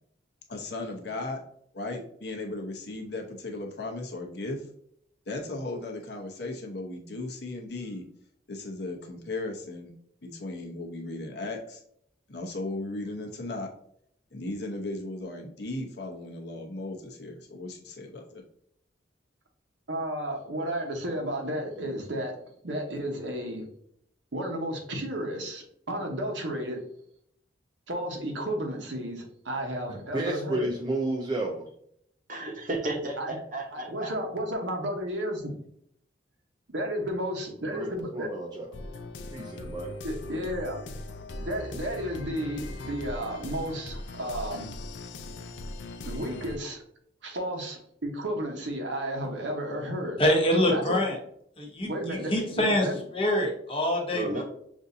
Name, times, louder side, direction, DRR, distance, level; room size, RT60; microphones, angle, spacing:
voice 1, 0.5-1.4 1.7-4.6 5.3-8.0 8.5-9.9 10.2-11.8 12.3-13.7 14.3-18.4, left 2 dB, 60° left, 0.8 m, -36 dB
voice 2, 19.9-22.3 22.6-23.6 24.3-26.8 27.9-30.7 33.2-33.4 33.7-35.5 36.7-38.3 40.0-40.8 41.4-44.7 46.0-46.8 47.2-50.2 50.6-51.0 51.8-53.0, equal, 80° right, 1.0 m, -32 dB
voice 3, 29.9-31.7 37.7-38.7 39.3-39.9, right 2 dB, 25° right, 0.4 m, -32 dB
voice 4, 32.3-34.1 54.1-54.4, right 2 dB, 45° right, 0.9 m, -33 dB
sound 1, 38.7-46.6, left 2 dB, 80° left, 0.5 m, -39 dB
voice 5, 50.2-51.2 51.6-52.9 53.1-54.4, left 1 dB, 30° left, 0.9 m, -25 dB
6.1 x 2.6 x 2.7 m
head